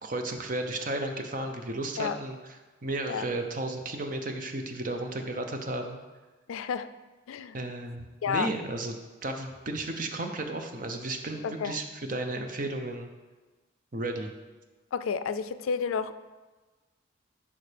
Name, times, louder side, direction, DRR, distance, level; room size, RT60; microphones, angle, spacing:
voice 1, 0.0-2.4 2.8-6.0 7.5-8.9 9.2-13.1 13.9-14.3, right 2 dB, 40° right, 5 dB, 0.6 m, -33 dB
voice 2, 6.5-6.9 7.3-7.6 8.2-8.5 11.4-11.8 14.9-16.2, left 6 dB, 90° left, 12 dB, 0.4 m, -31 dB
8.5 x 5.6 x 3.4 m, 1.3 s
head